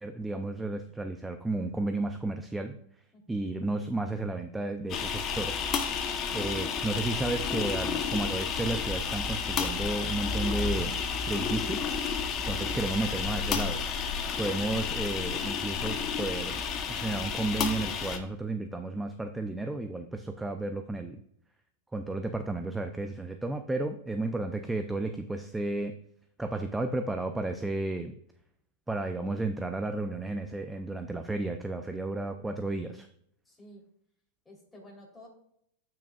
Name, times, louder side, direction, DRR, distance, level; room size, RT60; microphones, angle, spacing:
voice 1, 0.0-2.7 3.3-5.5 5.8-6.0 6.3-10.9 11.3-11.9 12.2-13.8 14.4-16.6 16.9-21.2 21.9-25.9 26.4-28.2 28.9-33.1, right 2 dB, 10° right, 7 dB, 0.6 m, -33 dB
voice 2, 3.1-3.5 33.5-33.9 34.5-35.3, equal, 10° left, -3 dB, 3.6 m, -53 dB
sound 1, 4.9-18.2, left 6 dB, 35° left, 1.0 m, -31 dB
12.0 x 6.1 x 2.5 m, 0.70 s
hypercardioid pair, 110°, 0 cm